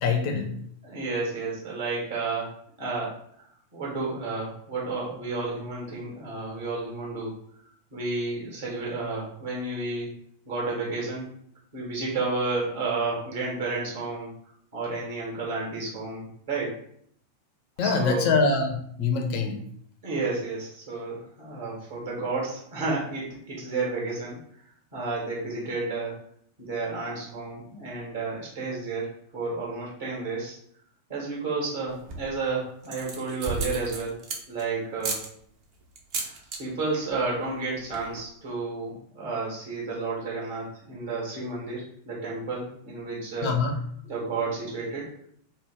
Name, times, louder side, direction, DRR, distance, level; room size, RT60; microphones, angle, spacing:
voice 1, 0.0-0.5 17.8-19.6 43.4-43.8, left 4 dB, 45° left, 4 dB, 0.5 m, -24 dB
voice 2, 0.8-2.5 2.8-3.1 3.7-7.3 7.9-10.1 10.4-11.2 11.7-14.3 14.7-16.8 17.8-18.3 20.0-24.4 24.9-26.1 26.6-30.5 31.1-34.1 34.5-35.2 36.2-43.5 44.0-45.1, right 3 dB, 55° right, -4 dB, 1.4 m, -31 dB
sound 1, 31.9-32.4 32.8-34.6 35.0-35.3 36.0-36.6 36.9-37.2 37.5-37.6 37.8-38.2, right 4 dB, 40° right, 0.6 m, -33 dB
3.1 x 2.1 x 3.5 m, 0.66 s
figure-of-eight pair, 90°, 0 cm